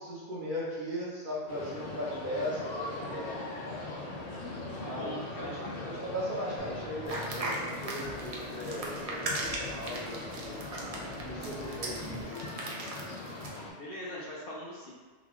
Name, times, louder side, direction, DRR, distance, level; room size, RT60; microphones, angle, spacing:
voice 1, 0.0-4.1 4.8-5.1 5.4-5.6 5.8-10.6 11.2-12.8, equal, 50° right, -6 dB, 0.8 m, -38 dB
sound 1, 1.5-13.7, left 2 dB, 80° left, 1.0 m, -41 dB
voice 2, 4.8-5.9 13.8-14.9, equal, 55° left, -5 dB, 0.8 m, -41 dB
sound 2, 6.6-12.2, equal, 85° right, 1.1 m, -46 dB
sound 3, 7.1-13.6, right 2 dB, 70° right, 0.3 m, -38 dB
4.0 x 2.3 x 2.9 m, 1.4 s
omnidirectional pair, 1.3 m